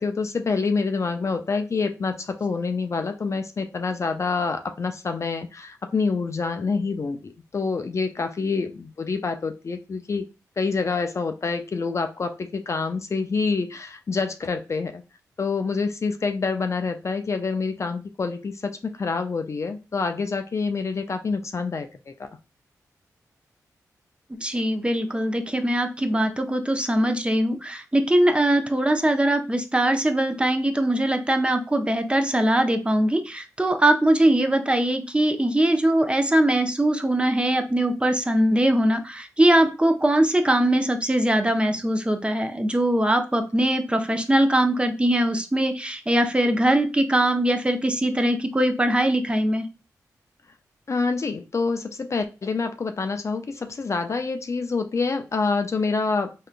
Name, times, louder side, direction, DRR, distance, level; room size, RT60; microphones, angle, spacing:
voice 1, 0.0-10.2 10.6-15.0 15.4-22.3 50.9-56.3, left 4 dB, 45° left, 7 dB, 0.4 m, -27 dB
voice 2, 24.4-49.6, right 1 dB, 15° right, 6 dB, 0.5 m, -21 dB
3.6 x 2.3 x 2.4 m, 0.30 s
supercardioid pair, 40°, 7 cm